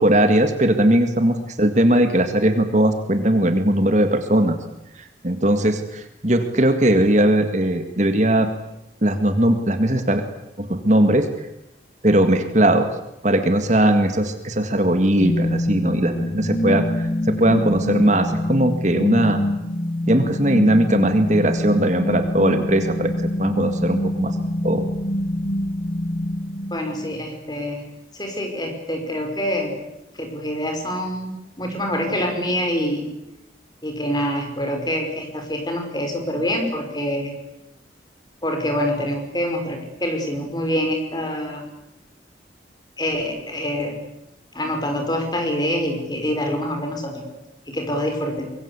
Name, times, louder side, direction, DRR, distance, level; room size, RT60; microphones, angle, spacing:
voice 1, 0.0-4.6 5.2-8.5 9.0-10.2 10.6-11.3 12.0-12.9 13.2-19.4 20.1-24.8, right 1 dB, 40° right, 7 dB, 2.0 m, -19 dB
sound 1, 15.2-27.2, left 1 dB, 45° left, 1.8 m, -25 dB
voice 2, 26.7-27.8 28.1-29.7 30.1-33.1 33.8-37.3 38.4-41.6 43.0-44.0 44.5-47.2 47.7-48.5, equal, 20° left, 4 dB, 5.5 m, -25 dB
24.5 x 22.5 x 8.4 m, 0.87 s
head